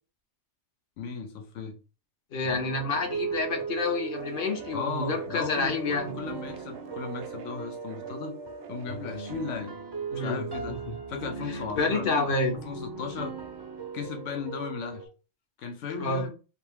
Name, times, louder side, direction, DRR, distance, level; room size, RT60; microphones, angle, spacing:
voice 1, 1.0-1.7 4.7-8.4 8.7-9.7 10.1-10.8 11.1-12.3 12.6-13.3 13.9-15.1 15.6-16.3, left 5 dB, 80° left, 1.0 m, -36 dB
voice 2, 2.3-6.1 10.1-11.0 11.8-12.6 16.0-16.3, left 3 dB, 55° left, 0.7 m, -29 dB
sound 1, 2.4-15.1, right 5 dB, 40° right, 0.3 m, -38 dB
sound 2, 4.1-9.6, right 3 dB, 70° right, 0.8 m, -43 dB
2.6 x 2.5 x 3.5 m
omnidirectional pair, 1.2 m